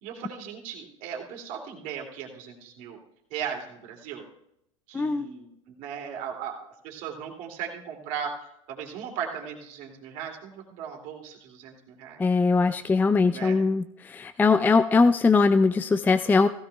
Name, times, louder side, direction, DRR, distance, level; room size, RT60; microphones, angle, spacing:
voice 1, 0.0-3.0 3.3-4.2 4.9-5.5 5.8-6.6 6.8-8.3 8.7-12.2 13.3-13.6, right 8 dB, 55° right, 0 dB, 2.6 m, -37 dB
voice 2, 4.9-5.3 12.2-16.5, left 4 dB, 10° left, 11 dB, 0.3 m, -21 dB
16.0 x 15.5 x 2.3 m, 0.79 s
hypercardioid pair, 95°, 16 cm